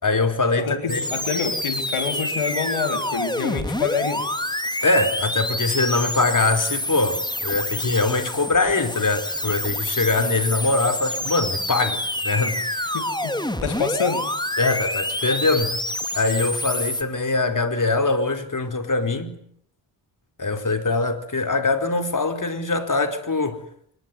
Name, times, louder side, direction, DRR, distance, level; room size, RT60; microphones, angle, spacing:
voice 1, 0.0-1.1 4.8-12.9 14.6-15.8 16.1-19.4 20.4-23.6, left 3 dB, 40° left, 4.4 m, -23 dB
voice 2, 0.6-4.2 12.9-14.3, left 5 dB, 85° left, 3.7 m, -27 dB
sound 1, 0.9-17.0, left 1 dB, 10° left, 2.7 m, -27 dB
25.0 x 21.5 x 9.7 m
cardioid pair, 70°, 48 cm